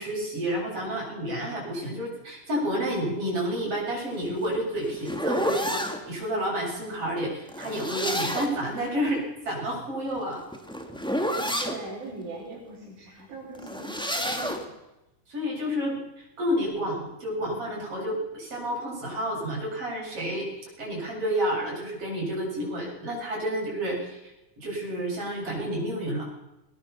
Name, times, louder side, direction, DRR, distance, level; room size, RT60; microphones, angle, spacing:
voice 1, 0.0-10.4 14.4-14.5 15.3-20.5 20.8-24.2 24.6-26.3, equal, 45° right, -2 dB, 8.6 m, -30 dB
sound 1, 4.2-6.0 7.5-8.7 10.1-11.8 13.5-14.7, equal, ahead, 1.5 m, -30 dB
voice 2, 10.8-14.6, right 2 dB, 80° right, -2 dB, 6.4 m, -41 dB
20.0 x 20.0 x 7.0 m, 0.94 s
omnidirectional pair, 3.5 m